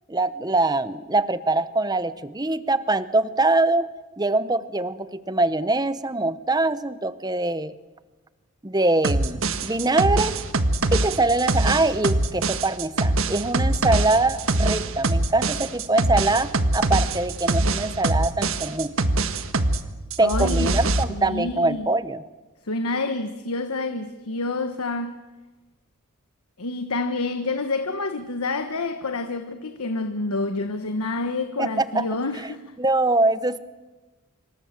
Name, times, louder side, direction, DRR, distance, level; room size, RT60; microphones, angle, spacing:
voice 1, 0.1-3.9 4.2-7.7 8.6-10.4 10.9-18.9 20.2-22.2 31.6-32.1 32.8-33.6, right 2 dB, 20° right, 0.9 m, -23 dB
sound 1, 9.0-19.8 20.1-21.0, right 2 dB, 65° right, 1.5 m, -23 dB
voice 2, 20.2-20.8 21.1-21.9 22.6-25.2 26.6-32.6, left 3 dB, 90° left, 1.3 m, -28 dB
27.0 x 24.0 x 7.5 m
head